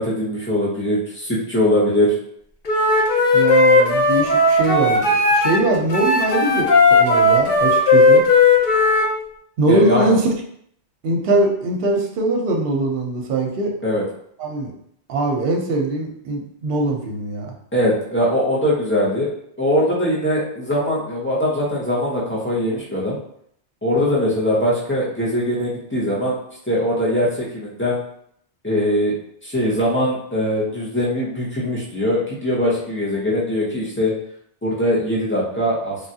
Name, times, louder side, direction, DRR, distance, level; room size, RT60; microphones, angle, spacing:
voice 1, 0.0-2.1 9.7-10.1 13.8-14.0 17.7-19.3 19.6-23.2 23.8-26.4 26.7-28.0 28.6-29.1 29.4-34.1 34.6-36.0, equal, 10° left, -7 dB, 0.7 m, -21 dB
Wind instrument woodwind instrument, 2.7-5.6 5.9-9.1, left 2 dB, 55° left, 0.6 m, -15 dB
voice 2, 3.3-8.2 9.6-10.3 11.0-13.7 14.4-14.7 15.1-17.5, right 2 dB, 60° right, 0 dB, 0.8 m, -21 dB
3.3 x 2.3 x 2.7 m, 0.68 s
omnidirectional pair, 1.2 m